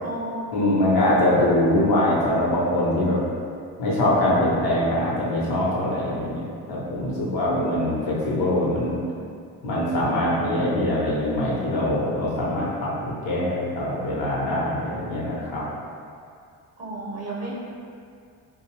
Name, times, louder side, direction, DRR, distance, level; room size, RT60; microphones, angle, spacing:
voice 1, 0.0-0.8 16.8-17.5, right 1 dB, 45° right, -4 dB, 0.7 m, -33 dB
voice 2, 0.5-3.2 3.8-9.0 9.6-15.6, left 1 dB, 75° left, -6 dB, 0.9 m, -23 dB
2.6 x 2.3 x 3.2 m, 2.3 s
cardioid pair, 85°, 37 cm